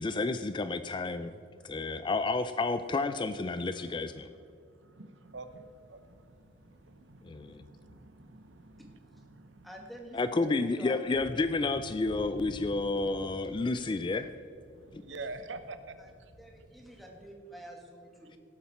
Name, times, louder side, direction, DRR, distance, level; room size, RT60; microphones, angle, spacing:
voice 1, 0.0-1.3 1.6-4.3 7.2-7.6 10.1-14.3 14.9-15.0, left 3 dB, 25° left, 11 dB, 0.3 m, -30 dB
voice 2, 4.8-9.7 12.5-12.7 13.9-14.0 14.7-16.1 18.2-18.4, right 3 dB, 80° right, 10 dB, 0.8 m, -47 dB
sound 1, 5.2-17.3, equal, 80° left, 1.5 m, -54 dB
voice 3, 9.6-11.1 16.0-16.1 16.4-18.4, equal, ahead, 0 dB, 1.9 m, -47 dB
17.5 x 8.5 x 4.3 m, 2.5 s
head